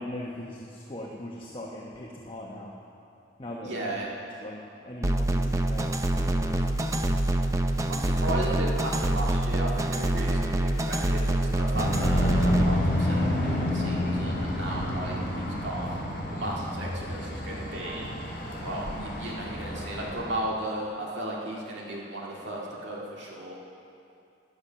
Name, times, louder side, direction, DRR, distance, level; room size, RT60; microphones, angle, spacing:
voice 1, 0.0-2.8 3.4-3.8 4.4-7.2, left 1 dB, 30° left, -3 dB, 1.0 m, -40 dB
voice 2, 3.6-4.1 7.9-16.0 16.3-18.1 18.6-23.5, right 1 dB, 70° right, -3 dB, 2.1 m, -35 dB
sound 1, 5.0-12.7, right 1 dB, 15° right, 0.5 m, -26 dB
sound 2, 11.7-20.4, left 1 dB, 50° left, 2.7 m, -29 dB
14.5 x 10.5 x 5.7 m, 2.6 s
head